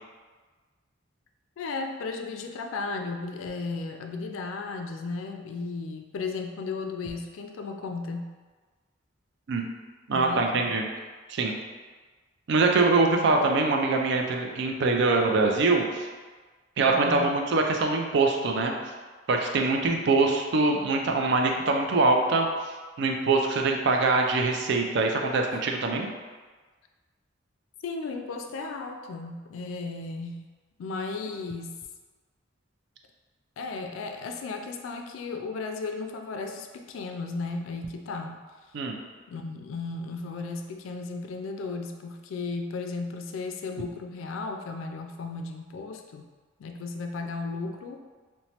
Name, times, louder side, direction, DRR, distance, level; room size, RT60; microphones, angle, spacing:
voice 1, 1.6-8.3 10.1-10.7 13.3-13.4 16.9-17.2 27.8-30.5 30.8-31.8 33.6-38.4 39.3-46.3 46.6-48.0, left 3 dB, 85° left, 5 dB, 0.3 m, -35 dB
voice 2, 10.1-10.9 11.3-11.5 12.5-16.1 16.8-18.7 19.3-26.1 38.7-39.0, right 3 dB, 60° right, 2 dB, 0.3 m, -24 dB
3.0 x 2.1 x 2.8 m, 1.4 s
head